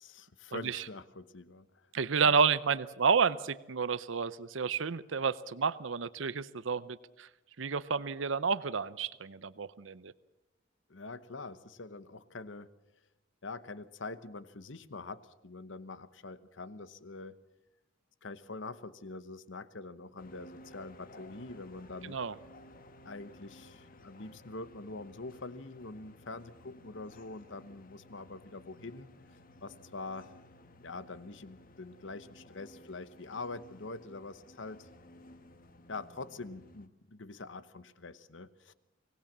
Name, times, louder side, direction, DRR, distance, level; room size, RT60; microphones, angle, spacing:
voice 1, 0.0-1.7 2.2-2.4 10.9-12.7 13.4-17.4 18.2-22.2 23.0-29.1 29.6-30.3 30.8-34.9 35.9-38.7, left 3 dB, 70° left, 14 dB, 1.0 m, -44 dB
voice 2, 0.5-0.8 1.9-7.3 7.6-10.1 22.1-22.3, right 5 dB, 80° right, 17 dB, 0.7 m, -30 dB
sound 1, 20.2-36.9, left 1 dB, 50° left, 1.4 m, -56 dB
24.5 x 18.5 x 7.4 m, 0.93 s
head